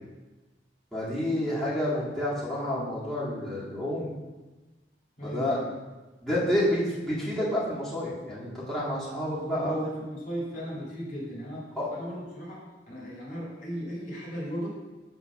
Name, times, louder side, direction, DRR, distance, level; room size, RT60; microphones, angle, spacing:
voice 1, 0.9-4.1 5.2-5.6 6.2-9.8 11.8-11.9, left 1 dB, ahead, -10 dB, 2.0 m, -29 dB
voice 2, 5.2-5.7 9.3-14.7, equal, 45° left, -5 dB, 2.1 m, -37 dB
7.0 x 3.9 x 6.0 m, 1.2 s
head